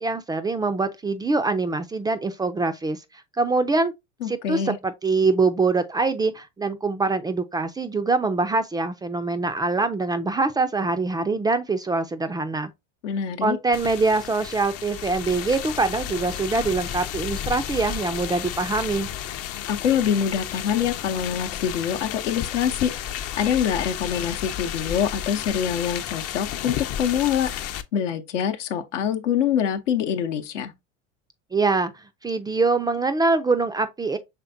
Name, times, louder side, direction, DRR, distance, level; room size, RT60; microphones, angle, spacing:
voice 1, 0.0-3.0 3.4-3.9 4.3-12.7 13.4-19.1 31.5-31.9 32.2-34.2, right 3 dB, 10° right, 0.3 m, -24 dB
voice 2, 4.2-4.8 13.0-13.6 19.7-22.9 23.4-27.5 27.9-30.7, left 8 dB, 80° left, 0.7 m, -25 dB
sound 1, 13.7-27.8, left 10 dB, 40° left, 0.5 m, -32 dB
5.8 x 3.4 x 2.6 m
hypercardioid pair, 80°, 36 cm